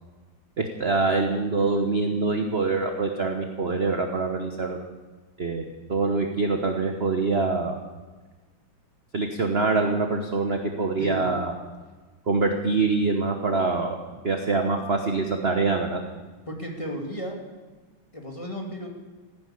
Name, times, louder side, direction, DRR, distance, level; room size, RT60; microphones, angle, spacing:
voice 1, 0.6-4.8 5.4-7.8 9.1-11.5 12.3-14.0 14.2-16.0, right 3 dB, 35° right, 3 dB, 1.1 m, -25 dB
voice 2, 16.5-17.4 18.1-18.9, equal, 15° left, 0 dB, 2.3 m, -33 dB
15.5 x 10.5 x 8.4 m, 1.3 s
omnidirectional pair, 2.3 m